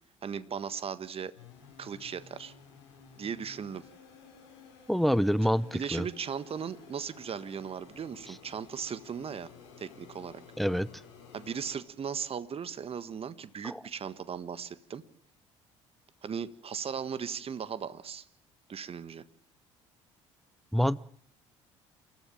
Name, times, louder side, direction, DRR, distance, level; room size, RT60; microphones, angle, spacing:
voice 1, 0.2-1.3 1.8-2.5 3.2-3.8 5.7-9.5 9.8-10.4 11.3-15.0 16.2-18.3 18.7-19.2, right 7 dB, 40° right, 14 dB, 1.6 m, -37 dB
sound 1, 1.3-11.8, left 6 dB, 80° left, 6.6 m, -54 dB
voice 2, 4.9-6.1 10.6-10.9 13.6-13.8 20.7-21.0, equal, ahead, 20 dB, 0.9 m, -26 dB
29.0 x 14.0 x 7.4 m, 0.63 s
hypercardioid pair, 55°, 15 cm